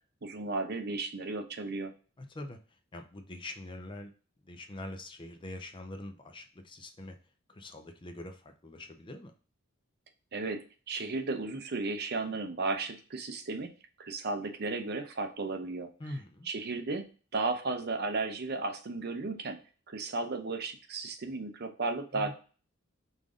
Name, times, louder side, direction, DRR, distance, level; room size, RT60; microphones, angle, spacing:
voice 1, 0.2-1.9 10.3-13.7 14.0-15.9 16.5-17.1 17.3-19.6 19.9-22.3, right 3 dB, 50° right, 6 dB, 0.6 m, -34 dB
voice 2, 2.2-2.6 2.9-4.1 4.4-7.2 7.5-9.3 16.0-16.5 22.1-22.3, left 1 dB, 25° left, 6 dB, 0.5 m, -43 dB
5.2 x 2.6 x 3.6 m, 0.37 s
head